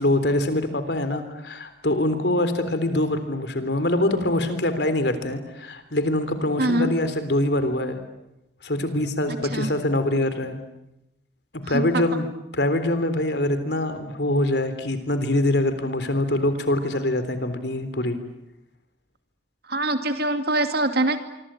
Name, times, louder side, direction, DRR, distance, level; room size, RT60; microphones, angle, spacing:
voice 1, 0.0-8.0 8.6-10.6 11.5-12.3 12.5-18.2, left 1 dB, 65° left, 10 dB, 3.6 m, -24 dB
voice 2, 6.6-6.9 9.3-9.7 11.7-12.0 19.7-21.2, right 1 dB, 60° right, 8 dB, 2.5 m, -24 dB
26.0 x 25.0 x 9.0 m, 0.90 s
head